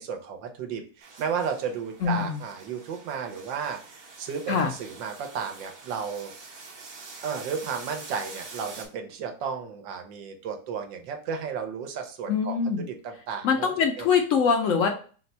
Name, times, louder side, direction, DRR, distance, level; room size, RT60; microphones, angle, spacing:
voice 1, 0.0-6.5 7.2-13.7 14.0-14.1, right 6 dB, 85° right, 5 dB, 1.4 m, -33 dB
sound 1, 1.0-8.9, right 4 dB, 55° right, 1.2 m, -46 dB
voice 2, 2.0-2.4 4.5-4.7 12.3-12.8 13.4-14.9, left 6 dB, 70° left, 3 dB, 0.7 m, -23 dB
4.2 x 2.2 x 4.1 m, 0.40 s
omnidirectional pair, 2.0 m